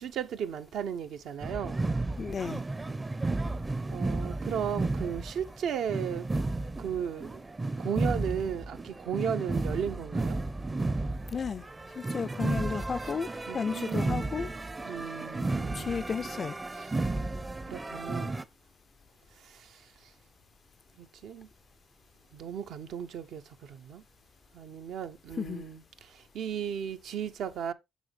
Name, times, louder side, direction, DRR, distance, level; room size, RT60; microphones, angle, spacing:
voice 1, 0.0-1.8 3.9-6.3 6.8-7.4 7.8-10.4 13.5-14.4 14.8-16.0 16.7-16.9 17.7-18.4 19.4-20.1 21.0-21.5 22.3-24.0 24.5-27.7, right 8 dB, 75° right, 0.7 m, -36 dB
sound 1, 1.4-18.4, right 2 dB, 20° right, 0.5 m, -33 dB
voice 2, 2.2-2.6 11.3-11.7 11.9-14.5 15.7-16.6 25.4-25.7, left 6 dB, 45° left, 0.4 m, -33 dB
7.0 x 6.1 x 3.4 m
cardioid pair, 90°, 0 cm